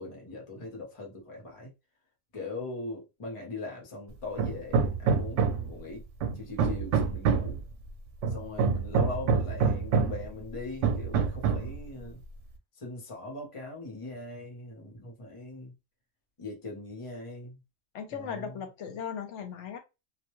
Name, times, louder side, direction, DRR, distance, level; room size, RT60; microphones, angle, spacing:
voice 1, 0.0-1.7 2.3-6.1 6.3-7.6 8.3-12.2 12.8-15.7 16.4-17.6 18.1-18.6, left 2 dB, 30° left, 0.8 m, -40 dB
Hammer, 4.4-5.8 6.2-7.6 8.2-10.3 10.8-11.8, right 5 dB, 75° right, 0.9 m, -26 dB
voice 2, 17.9-19.8, left 7 dB, 70° left, 1.0 m, -37 dB
2.4 x 2.2 x 2.9 m
omnidirectional pair, 1.3 m